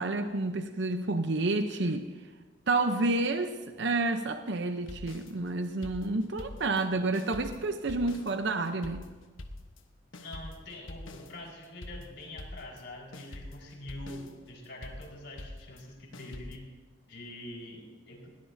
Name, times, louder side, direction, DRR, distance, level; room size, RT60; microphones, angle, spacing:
voice 1, 0.0-2.1 2.7-9.1, right 2 dB, 60° right, 7 dB, 0.8 m, -29 dB
sound 1, 4.9-6.9 7.1-12.9 13.1-16.6, left 1 dB, 85° left, 1.1 m, -45 dB
voice 2, 10.2-16.7 17.1-18.3, left 1 dB, 65° left, -2 dB, 4.6 m, -45 dB
21.0 x 18.0 x 2.7 m, 1.3 s
head